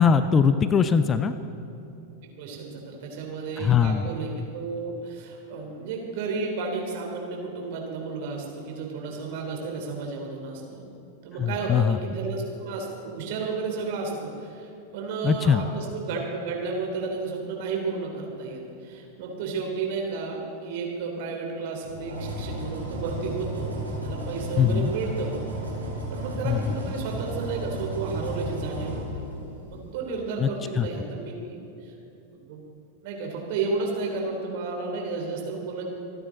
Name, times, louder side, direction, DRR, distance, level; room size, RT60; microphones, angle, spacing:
voice 1, 0.0-1.3 3.6-4.1 11.4-12.0 15.2-15.7 24.6-24.9 26.4-26.7 30.4-30.5 30.8-30.9, left 7 dB, 20° left, 12 dB, 0.5 m, -21 dB
voice 2, 2.4-10.8 11.2-25.3 26.1-29.2 29.6-31.9 32.3-32.6 33.0-35.8, right 4 dB, 50° right, 0 dB, 3.2 m, -32 dB
sound 1, 21.8-29.8, right 1 dB, 80° right, 3.9 m, -34 dB
27.0 x 9.6 x 4.0 m, 2.9 s
figure-of-eight pair, 90°, 0 cm